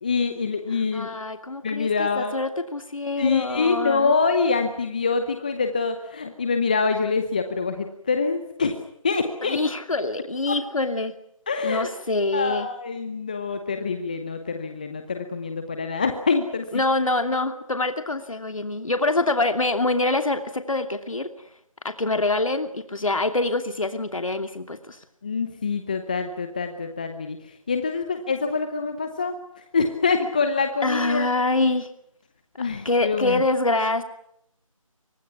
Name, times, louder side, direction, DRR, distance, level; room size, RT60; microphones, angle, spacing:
voice 1, 0.0-1.1 1.6-2.4 3.2-8.7 9.0-9.6 10.5-10.6 11.5-11.9 12.3-16.7 25.2-29.4 29.7-31.3 32.6-33.4, left 4 dB, 15° left, 7 dB, 0.9 m, -25 dB
voice 2, 0.9-4.1 9.4-11.1 11.6-12.7 16.7-21.5 21.8-25.0 30.8-31.9 32.8-34.0, left 2 dB, 70° left, 7 dB, 2.7 m, -25 dB
29.5 x 24.5 x 5.9 m, 0.73 s
figure-of-eight pair, 170°, 18 cm